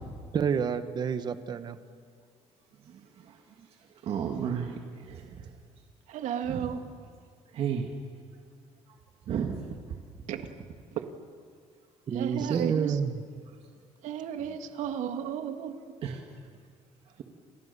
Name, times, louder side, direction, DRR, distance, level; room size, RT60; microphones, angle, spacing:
voice 1, 0.3-1.8 12.1-13.2, right 7 dB, 35° right, 11 dB, 1.3 m, -29 dB
voice 2, 2.9-3.4 4.0-5.5 6.5-6.7 7.5-7.9 9.3-9.6 12.4-12.6 16.0-16.2, right 7 dB, 55° right, 2 dB, 2.1 m, -33 dB
voice 3, 6.1-6.8 10.3-10.5 10.9-11.0 12.1-13.0 14.0-15.7, right 9 dB, 90° right, 7 dB, 2.1 m, -33 dB
30.0 x 27.5 x 7.0 m, 2.1 s
cardioid pair, 170°, 12 cm